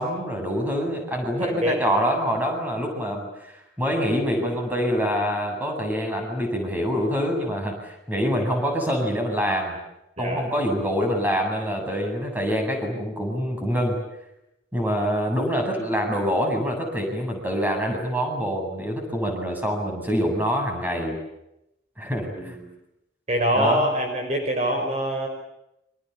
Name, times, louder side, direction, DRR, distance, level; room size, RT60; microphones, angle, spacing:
voice 1, 0.0-3.3 3.8-9.8 10.2-14.0 14.7-21.2 22.0-22.6 23.6-23.9, equal, 10° right, 3 dB, 8.0 m, -25 dB
voice 2, 1.4-1.8 10.2-10.4 22.3-22.6 23.3-25.3, equal, 35° right, 3 dB, 5.6 m, -24 dB
30.0 x 26.5 x 7.1 m, 0.85 s
head